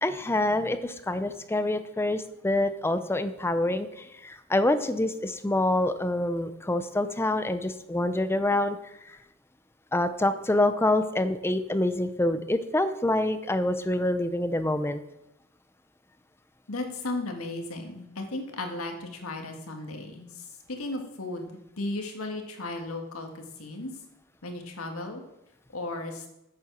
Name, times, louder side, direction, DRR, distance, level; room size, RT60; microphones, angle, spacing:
voice 1, 0.0-8.8 9.1-9.2 9.9-15.0, left 1 dB, 10° left, 10 dB, 0.5 m, -26 dB
voice 2, 16.7-23.9 24.4-25.2 25.7-26.2, left 2 dB, 90° left, 4 dB, 1.7 m, -35 dB
8.6 x 7.2 x 6.1 m, 0.87 s
head